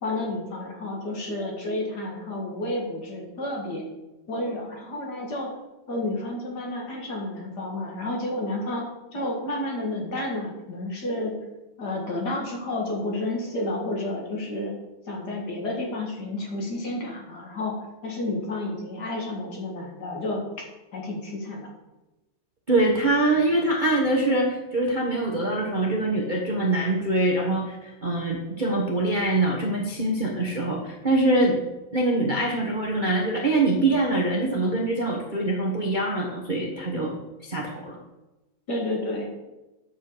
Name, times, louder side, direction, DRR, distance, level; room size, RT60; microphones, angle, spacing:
voice 1, 0.0-3.8 4.3-5.5 5.9-11.3 11.8-14.7 15.1-20.6 20.9-21.7 38.7-39.3, left 1 dB, 50° left, -1 dB, 2.4 m, -31 dB
voice 2, 22.7-27.8 28.0-31.6 31.9-37.1 37.4-38.0, right 2 dB, 30° right, -2 dB, 1.0 m, -24 dB
8.9 x 5.5 x 6.7 m, 1.0 s
omnidirectional pair, 2.3 m